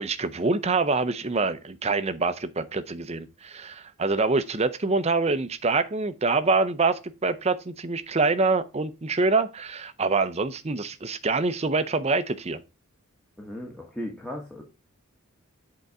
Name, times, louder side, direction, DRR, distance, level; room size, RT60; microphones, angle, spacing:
voice 1, 0.0-12.6, right 3 dB, 30° right, 0.6 m, -25 dB
voice 2, 13.4-14.6, left 1 dB, 5° left, 1.2 m, -36 dB
7.9 x 3.9 x 4.7 m
head